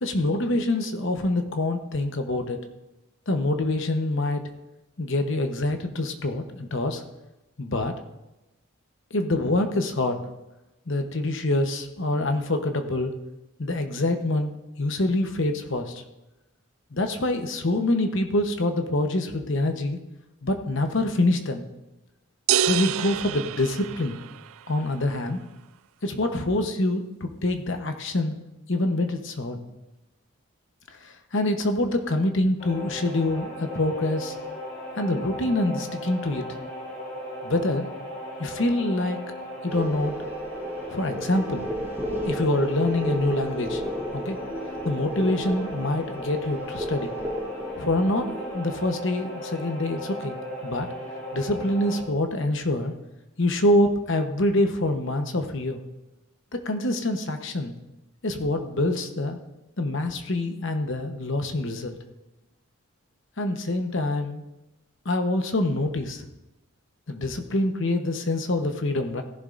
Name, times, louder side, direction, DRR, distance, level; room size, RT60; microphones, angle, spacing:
voice 1, 0.0-2.6 3.3-4.4 5.0-7.0 7.6-7.9 9.1-10.2 10.9-13.1 13.6-14.5 14.8-16.0 16.9-20.0 20.4-21.7 22.7-24.2 24.7-25.4 26.0-28.3 28.7-29.6 31.0-34.3 35.0-36.4 37.4-37.9 38.4-39.2 39.6-40.1 40.9-41.6 42.2-43.8 44.1-44.4 44.8-47.1 47.8-50.4 50.6-50.9 51.3-52.9 53.4-55.8 56.6-57.7 58.2-59.4 59.8-62.0 63.4-64.4 65.0-66.3 67.1-69.2, left 2 dB, 55° left, 6 dB, 0.9 m, -25 dB
sound 1, 22.5-24.5, right 10 dB, 70° right, 0.3 m, -26 dB
sound 2, 32.6-52.0, equal, 40° left, 2.5 m, -37 dB
sound 3, 39.7-48.6, equal, 10° right, 0.9 m, -33 dB
16.5 x 11.0 x 2.5 m, 1.0 s
head